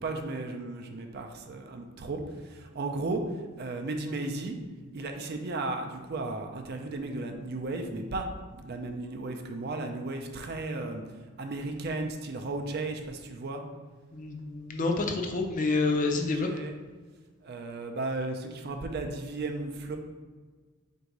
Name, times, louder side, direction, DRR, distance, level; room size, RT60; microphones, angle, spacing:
voice 1, 0.0-3.2 3.6-4.6 4.9-8.3 8.5-11.0 11.4-13.6 16.1-16.7 17.4-20.0, right 2 dB, 50° right, 4 dB, 0.5 m, -35 dB
voice 2, 14.1-16.5, left 3 dB, 40° left, 3 dB, 0.4 m, -28 dB
3.9 x 2.7 x 4.6 m, 1.4 s
head